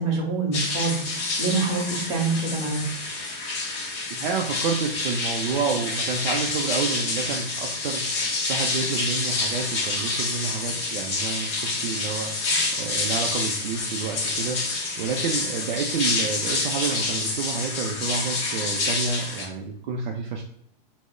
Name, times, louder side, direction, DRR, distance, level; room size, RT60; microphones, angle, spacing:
voice 1, 0.0-2.8, right 3 dB, 20° right, -2 dB, 0.7 m, -26 dB
sound 1, 0.5-19.4, left 3 dB, 20° left, 0.6 m, -28 dB
voice 2, 4.1-20.4, right 5 dB, 50° right, 1 dB, 0.4 m, -29 dB
4.8 x 2.0 x 2.2 m, 0.70 s
supercardioid pair, 160°, 30 cm